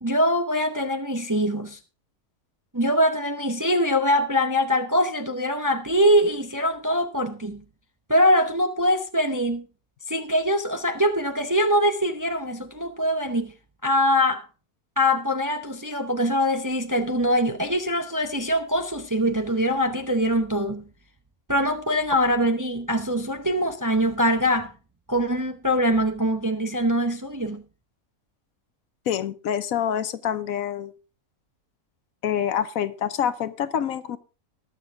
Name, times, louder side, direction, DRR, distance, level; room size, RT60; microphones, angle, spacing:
voice 1, 0.0-1.8 2.7-7.6 8.1-9.7 10.1-13.5 13.8-14.4 15.0-20.8 21.5-24.7 25.1-27.6, equal, 20° right, 0.6 m, -23 dB
voice 2, 29.1-30.9 32.2-34.2, left 9 dB, 75° left, 1.2 m, -26 dB
19.5 x 7.1 x 3.5 m
omnidirectional pair, 1.5 m